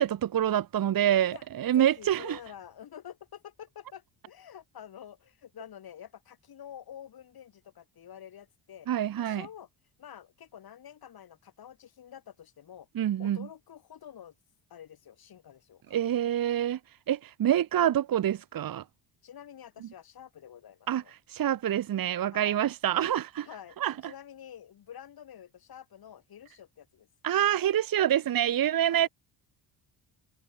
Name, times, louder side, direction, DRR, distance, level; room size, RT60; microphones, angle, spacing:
voice 1, 0.0-2.4 8.9-9.5 12.9-13.5 15.9-18.8 20.9-23.5 23.8-24.1 27.2-29.1, right 11 dB, 50° right, 1.4 m, -27 dB
voice 2, 1.7-8.9 9.2-9.7 10.0-12.9 13.2-14.3 14.7-16.4 19.2-21.1 22.3-22.6 23.4-23.8 24.0-27.1 28.8-29.1, left 9 dB, 55° left, 7.3 m, -48 dB
cardioid pair, 110°, 44 cm